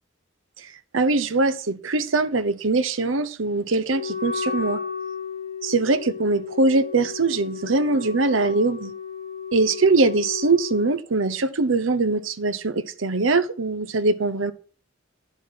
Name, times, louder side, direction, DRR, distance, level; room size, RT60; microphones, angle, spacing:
voice 1, 0.6-4.8 5.6-8.9 9.5-14.5, right 3 dB, 80° right, 0.9 m, -22 dB
Wind instrument woodwind instrument, 3.9-10.9, left 6 dB, 30° left, 2.9 m, -33 dB
10.0 x 7.1 x 4.3 m
head